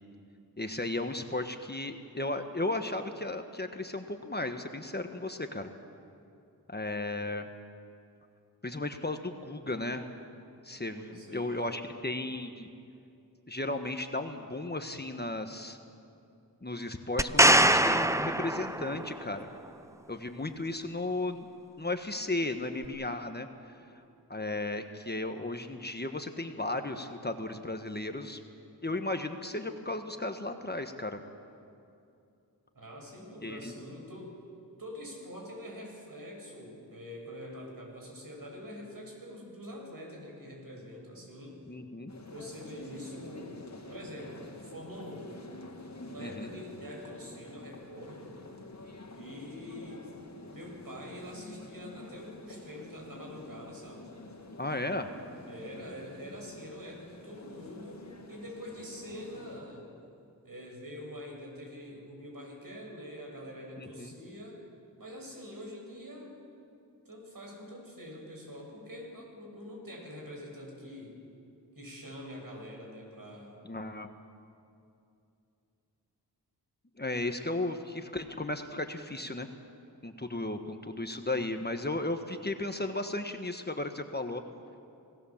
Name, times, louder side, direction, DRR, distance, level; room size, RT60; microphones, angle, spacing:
voice 1, 0.6-5.7 6.7-7.5 8.6-10.1 10.6-12.7 13.5-15.8 16.6-19.5 20.1-21.5 21.8-23.5 24.3-28.4 28.8-31.2 33.4-33.7 41.7-42.1 46.2-46.5 54.6-55.1 63.8-64.1 73.6-74.1 77.0-79.5 80.0-84.4, left 2 dB, 25° left, 6 dB, 1.3 m, -35 dB
voice 2, 10.9-11.7 32.8-34.4 34.8-41.6 42.3-45.4 46.1-48.4 49.2-50.1 50.5-54.1 55.5-59.9 60.4-64.6 65.0-66.4 67.1-71.2 71.8-73.6, equal, 60° right, 0 dB, 6.7 m, -45 dB
sound 1, 17.2-19.2 22.8-22.9, right 1 dB, 10° right, 0.7 m, -23 dB
sound 2, 42.1-59.6, left 2 dB, 45° left, 2.4 m, -49 dB
26.0 x 17.5 x 7.3 m, 2.6 s
cardioid pair, 50°, 39 cm